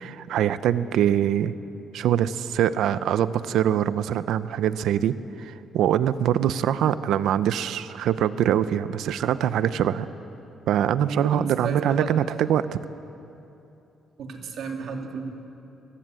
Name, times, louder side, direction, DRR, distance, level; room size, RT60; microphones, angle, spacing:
voice 1, 0.0-1.5 1.9-10.1 10.7-12.7, right 10 dB, 75° right, 14 dB, 0.7 m, -23 dB
voice 2, 11.1-12.1 14.2-15.3, right 5 dB, 60° right, 3 dB, 2.5 m, -33 dB
23.5 x 18.5 x 7.7 m, 2.8 s
cardioid pair, 150°, 0 cm